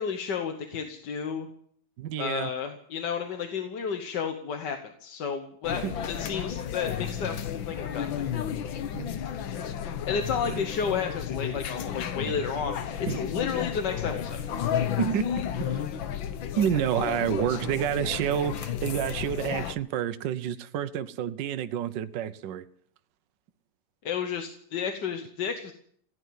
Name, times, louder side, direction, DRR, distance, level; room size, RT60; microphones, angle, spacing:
voice 1, 0.0-1.5 2.2-8.3 10.0-14.4 24.0-25.7, left 6 dB, 65° left, 1.7 m, -32 dB
voice 2, 2.0-2.5 5.8-5.9 8.9-9.1 10.5-10.6 12.3-12.4 13.1-13.2 15.0-15.8 16.6-22.7, right 10 dB, 70° right, 1.4 m, -29 dB
sound 1, 5.6-19.8, left 9 dB, 90° left, 1.8 m, -32 dB
16.0 x 9.3 x 9.4 m
omnidirectional pair, 2.0 m